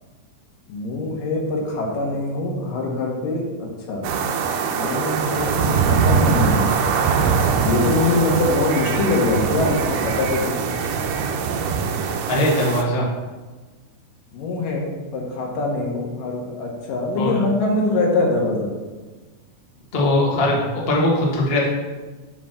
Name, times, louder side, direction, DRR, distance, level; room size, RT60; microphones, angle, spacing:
voice 1, 0.7-4.1 4.7-6.7 7.7-10.6 14.3-18.7, left 2 dB, 70° left, -1 dB, 3.0 m, -23 dB
sound 1, 4.0-12.8, right 6 dB, 75° right, 2.2 m, -22 dB
voice 2, 12.3-13.1 17.2-17.4 19.9-21.7, left 1 dB, 85° left, -3 dB, 0.5 m, -20 dB
7.3 x 6.1 x 5.8 m, 1.3 s
omnidirectional pair, 4.2 m